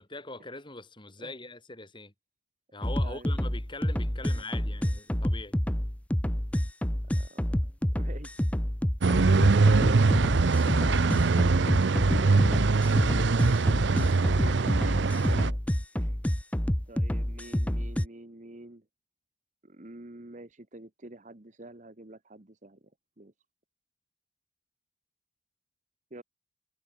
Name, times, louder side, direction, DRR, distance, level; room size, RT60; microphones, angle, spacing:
voice 1, 0.0-2.1 2.7-5.6 9.0-9.5 12.1-12.7, left 2 dB, 25° left, 7.8 m, -43 dB
sound 1, 2.8-18.1, equal, 5° left, 0.6 m, -28 dB
voice 2, 7.1-8.5 13.7-15.6 15.9-16.2 16.9-18.8 19.6-22.9 23.2-23.3 26.1-26.2, right 2 dB, 40° right, 1.3 m, -47 dB
sound 2, 9.0-15.5, right 4 dB, 65° right, 0.6 m, -23 dB
head